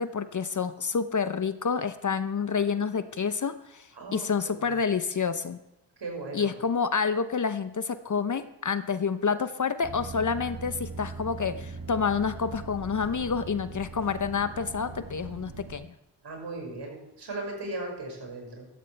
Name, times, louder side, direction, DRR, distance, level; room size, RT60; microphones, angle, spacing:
voice 1, 0.0-5.6 6.3-15.9, left 5 dB, 40° left, 11 dB, 0.8 m, -28 dB
voice 2, 3.9-4.7 6.0-6.5 16.2-18.7, right 2 dB, 60° right, 0 dB, 5.9 m, -37 dB
sound 1, 9.8-15.8, right 3 dB, 45° right, 2.1 m, -40 dB
15.5 x 14.0 x 3.4 m, 0.88 s
cardioid pair, 55°, 48 cm